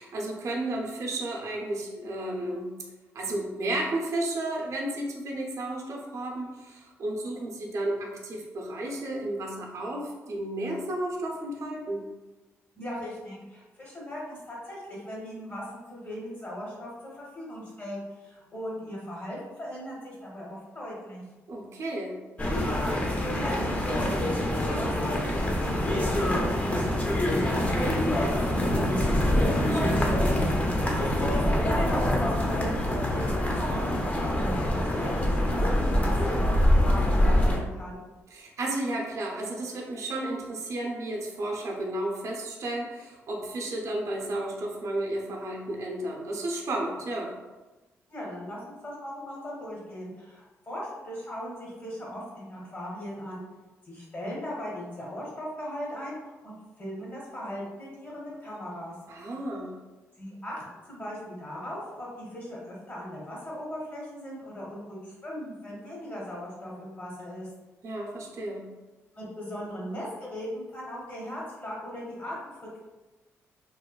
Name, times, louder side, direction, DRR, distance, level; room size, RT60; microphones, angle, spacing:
voice 1, 0.0-2.7 3.1-12.1 21.5-22.2 29.3-30.1 38.3-47.3 59.1-59.7 67.8-68.6, right 1 dB, 60° right, -1 dB, 0.5 m, -33 dB
voice 2, 12.8-21.2 22.4-29.1 30.8-38.0 48.1-53.4 53.8-58.9 60.2-67.5 69.1-72.8, equal, 40° left, -4 dB, 0.8 m, -39 dB
sound 1, 22.4-37.6, left 1 dB, 25° left, 0.5 m, -25 dB
3.0 x 2.1 x 2.2 m, 1.1 s
cardioid pair, 70°, 6 cm